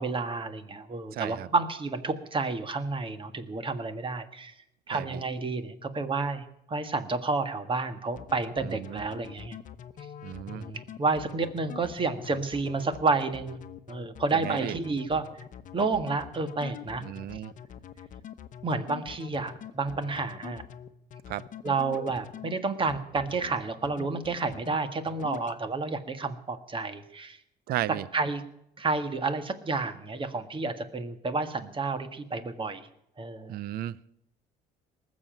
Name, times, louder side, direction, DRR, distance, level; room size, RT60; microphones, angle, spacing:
voice 1, 0.0-4.5 4.9-9.6 10.5-13.6 13.9-15.3 15.7-17.0 18.6-20.6 21.6-27.4 28.1-28.4 28.8-32.8 33.2-33.6, right 3 dB, 30° right, 1.6 m, -30 dB
voice 2, 1.1-1.5 4.9-5.2 8.6-9.0 10.2-10.6 14.3-14.8 17.0-17.5 21.3-21.5 27.7-28.1 33.5-34.0, right 13 dB, 65° right, 0.5 m, -34 dB
sound 1, 8.2-22.5 22.9-23.5 23.8-24.8 25.1-25.6, left 9 dB, 50° left, 1.0 m, -43 dB
19.5 x 7.5 x 9.0 m
cardioid pair, 110°, 17 cm